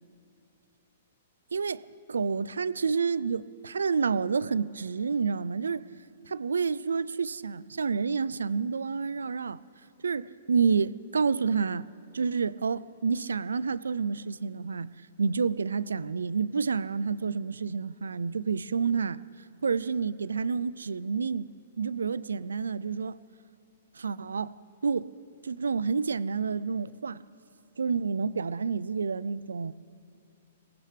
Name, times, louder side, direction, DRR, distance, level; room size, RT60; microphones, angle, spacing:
voice 1, 1.5-1.8 2.1-5.9 6.2-9.6 10.0-11.9 12.1-14.9 15.2-19.2 19.6-21.5 21.8-23.2 24.0-24.6 24.8-25.1 25.4-27.2 27.8-29.7, right 5 dB, 90° right, 0.3 m, -29 dB
22.5 x 18.5 x 3.3 m
hypercardioid pair, 130°, 0 cm